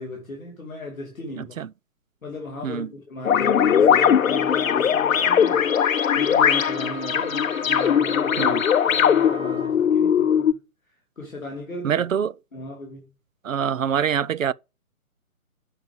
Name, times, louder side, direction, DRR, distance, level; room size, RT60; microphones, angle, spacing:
voice 1, 0.0-1.5 2.2-10.5 11.1-12.1 12.5-13.1, left 2 dB, ahead, 0.5 m, -36 dB
voice 2, 1.4-1.7 2.6-2.9 8.4-8.6 11.8-12.3 13.4-14.5, right 8 dB, 65° right, 0.5 m, -25 dB
sound 1, 3.2-10.5, left 8 dB, 65° left, 0.6 m, -20 dB
Wind instrument woodwind instrument, 5.1-9.8, right 7 dB, 25° right, 1.5 m, -40 dB
12.0 x 5.0 x 4.9 m
figure-of-eight pair, 135°, 44 cm